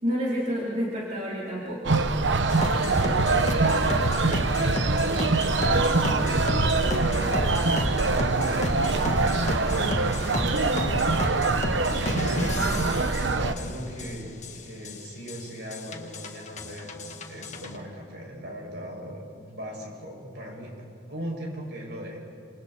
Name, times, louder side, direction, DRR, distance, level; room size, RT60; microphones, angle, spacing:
voice 1, 0.0-2.0, equal, 40° right, -7 dB, 4.4 m, -29 dB
sound 1, 1.8-13.5, right 3 dB, 90° right, 1.1 m, -24 dB
sound 2, 2.5-17.8, left 1 dB, 40° left, 1.8 m, -32 dB
voice 2, 2.7-9.2 9.7-11.4 11.7-20.7 21.1-22.2, equal, 65° right, -2 dB, 7.6 m, -39 dB
29.5 x 27.5 x 4.6 m, 2.5 s
head